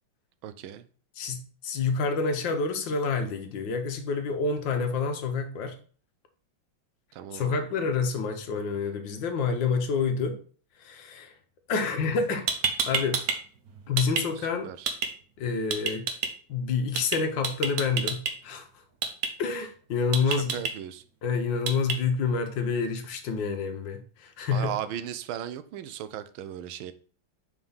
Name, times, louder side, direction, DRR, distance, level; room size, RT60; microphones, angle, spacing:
voice 1, 0.4-0.8 7.1-7.6 14.4-14.9 20.3-21.0 24.5-26.9, right 10 dB, 85° right, 1.4 m, -37 dB
voice 2, 1.2-5.8 7.3-10.4 10.8-11.3 11.7-12.5 12.9-13.2 13.9-14.7 15.4-16.1 16.5-18.7 19.4-20.6 21.2-24.7, left 5 dB, 70° left, 1.5 m, -28 dB
sound 1, 12.2-12.3 12.5-13.4 13.7-14.2 14.9-15.1 15.7-16.3 17.0-17.2 17.4-18.3 19.0-19.3 20.1-20.7 21.7-22.0, right 6 dB, 60° right, 1.1 m, -27 dB
4.9 x 3.6 x 5.4 m
omnidirectional pair, 2.2 m